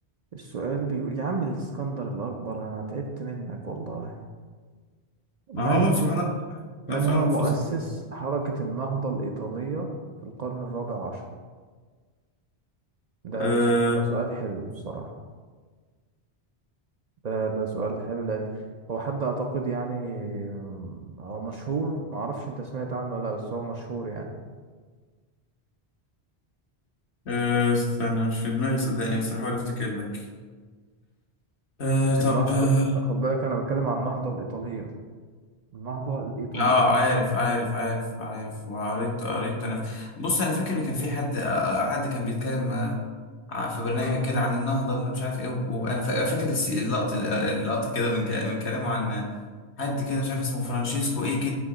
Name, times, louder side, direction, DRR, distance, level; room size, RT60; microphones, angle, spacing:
voice 1, 0.3-4.2 5.5-6.2 6.9-9.9 10.2-11.2 13.2-13.6 13.9-15.2 17.2-18.5 18.9-24.3 32.2-32.7 33.1-34.9 35.7-36.7, right 4 dB, 50° right, 2 dB, 0.5 m, -30 dB
voice 2, 5.5-6.6 6.9-7.5 13.4-14.0 27.2-30.2 31.8-32.9 36.5-43.0 43.5-49.3 49.8-51.5, left 1 dB, 80° left, -1 dB, 1.4 m, -26 dB
8.3 x 2.9 x 4.8 m, 1.5 s
omnidirectional pair, 1.1 m